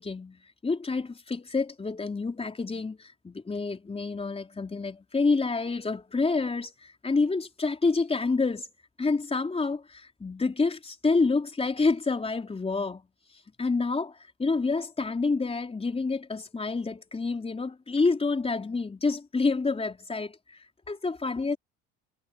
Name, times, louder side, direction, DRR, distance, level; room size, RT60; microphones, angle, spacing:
voice 1, 0.0-8.7 9.0-13.1 13.6-21.6, left 4 dB, 20° left, 4.0 m, -28 dB
supercardioid pair, 95°, 31 cm